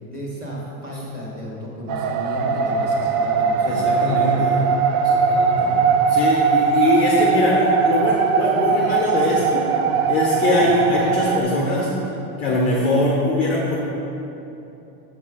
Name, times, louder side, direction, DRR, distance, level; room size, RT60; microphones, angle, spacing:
voice 1, 0.1-3.9 4.2-4.5 5.5-5.8 10.6-10.9, equal, 20° right, -4 dB, 1.3 m, -34 dB
sound 1, 1.9-11.4, right 5 dB, 60° right, 0.7 m, -20 dB
voice 2, 3.6-4.6 5.0-5.7 6.1-9.7 10.1-11.9 12.4-13.8, left 2 dB, 15° left, -3 dB, 0.4 m, -21 dB
7.1 x 4.3 x 6.1 m, 2.9 s
supercardioid pair, 160°, 47 cm